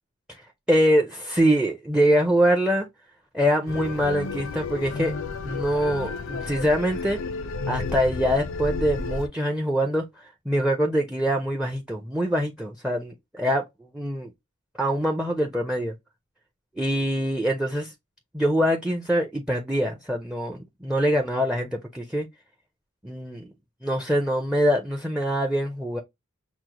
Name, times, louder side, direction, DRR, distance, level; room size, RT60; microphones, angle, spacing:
voice 1, 0.7-2.9 3.3-5.1 5.4-7.2 7.7-13.6 13.9-14.3 14.8-15.9 16.8-17.9 18.3-22.3 23.0-23.5 23.8-26.0, equal, 5° right, 0.4 m, -24 dB
sound 1, 3.7-9.3, left 4 dB, 60° left, 0.5 m, -32 dB
6.1 x 2.1 x 2.8 m
head